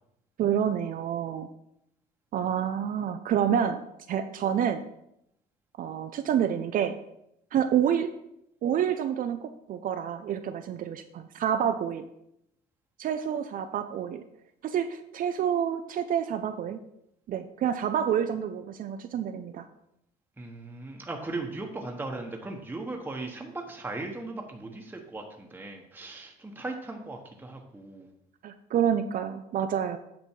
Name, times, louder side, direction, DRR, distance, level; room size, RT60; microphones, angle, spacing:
voice 1, 0.4-1.5 2.3-3.8 4.1-4.8 5.8-7.0 7.5-8.1 8.6-12.1 13.0-14.2 14.6-16.8 17.3-19.7 28.4-30.0, right 9 dB, 55° right, 9 dB, 0.5 m, -28 dB
voice 2, 20.4-28.1, right 2 dB, 10° right, 2 dB, 1.1 m, -38 dB
8.7 x 5.3 x 4.6 m, 0.80 s
cardioid pair, 110°, 17 cm